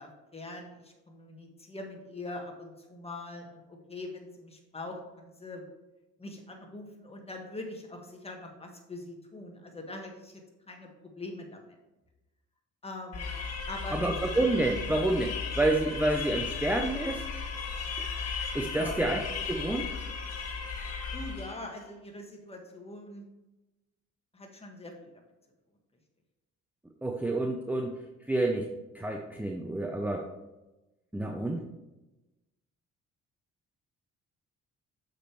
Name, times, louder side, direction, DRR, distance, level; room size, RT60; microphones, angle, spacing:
voice 1, 0.0-5.7 6.2-10.4 10.7-10.9 11.2-11.8 12.8-13.3 13.7-14.3 18.7-19.0 21.1-23.2 24.3-24.9, left 2 dB, 20° left, 2 dB, 1.6 m, -43 dB
sound 1, 13.1-21.7, left 5 dB, 55° left, 1.5 m, -36 dB
voice 2, 13.9-17.2 18.5-19.2 19.5-19.9 27.0-28.0 28.3-28.7 28.9-30.3 31.1-31.6, right 2 dB, 5° right, 3 dB, 0.6 m, -28 dB
6.4 x 5.2 x 4.5 m, 1.0 s
cardioid pair, 90°, 30 cm